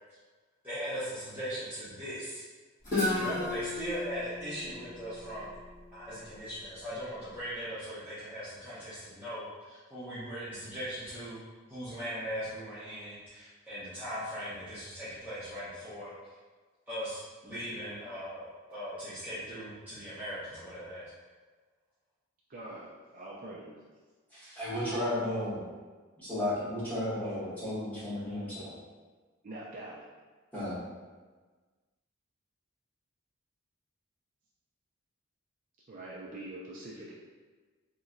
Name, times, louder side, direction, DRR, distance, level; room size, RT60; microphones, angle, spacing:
voice 1, 0.6-2.4 2.9-5.6 5.9-16.1 16.9-21.1, equal, 10° right, -14 dB, 0.7 m, -39 dB
Guitar, 2.8-6.6, left 2 dB, 40° left, 1.2 m, -35 dB
voice 2, 22.5-23.8 29.4-30.1 35.9-37.1, right 1 dB, 40° right, -6 dB, 0.4 m, -44 dB
voice 3, 24.6-25.6 26.3-28.7 30.5-30.8, left 1 dB, 10° left, -12 dB, 1.3 m, -33 dB
3.1 x 2.8 x 2.5 m, 1.4 s
head